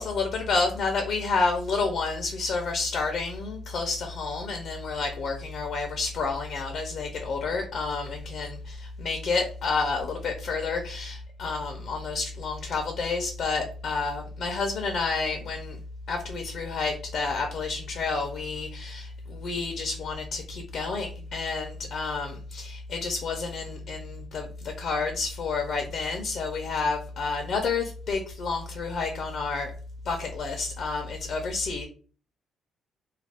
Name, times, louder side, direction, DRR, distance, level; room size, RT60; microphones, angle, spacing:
voice 1, 0.0-15.8 16.1-29.7 30.0-31.8, left 4 dB, 60° left, 3 dB, 0.5 m, -30 dB
2.4 x 2.2 x 3.4 m, 0.40 s
cardioid pair, 105°, 0 cm